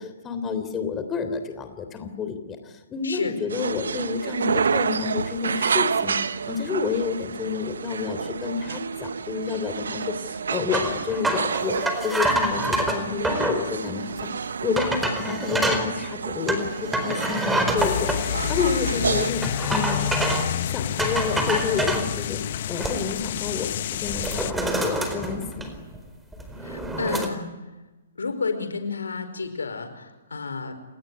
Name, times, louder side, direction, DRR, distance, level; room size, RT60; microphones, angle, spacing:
voice 1, 0.0-2.6 2.9-6.2 6.5-10.1 10.5-14.3 14.6-19.4 19.7-20.0 20.6-25.7, left 6 dB, 20° left, 8 dB, 3.4 m, -29 dB
voice 2, 3.0-3.3 26.6-27.5 28.2-30.7, left 4 dB, 80° left, 8 dB, 4.8 m, -30 dB
sound 1, 3.5-19.3, right 6 dB, 70° right, 1.0 m, -29 dB
sound 2, 10.7-13.6 14.2-14.3 14.8-15.9 16.5-18.2 19.4-20.5 21.0-22.1 22.5-23.2 23.6-23.8 24.1-26.0 26.3-27.3, right 1 dB, 5° right, 4.5 m, -26 dB
sound 3, 17.8-24.5, left 11 dB, 50° left, 1.0 m, -29 dB
30.0 x 19.0 x 9.8 m, 1.1 s
figure-of-eight pair, 130°, 0 cm